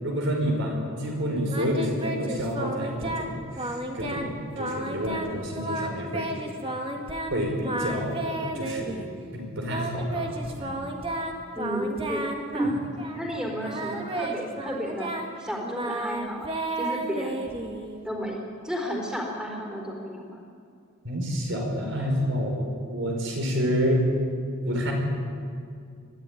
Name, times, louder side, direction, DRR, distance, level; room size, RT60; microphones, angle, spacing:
voice 1, 0.0-6.3 7.3-9.0 9.3-10.3 10.6-10.8 21.0-24.0 24.6-24.9, equal, 60° right, 1 dB, 5.3 m, -28 dB
Singing, 1.5-3.3 3.6-4.3 4.6-5.3 5.6-7.3 7.6-9.1 9.7-13.3 13.6-18.0, right 1 dB, 25° right, 1.9 m, -32 dB
voice 2, 11.6-12.8 13.1-15.1 15.4-17.4 18.0-20.5, equal, 5° right, 0 dB, 3.8 m, -32 dB
22.5 x 14.5 x 9.9 m, 2.3 s
head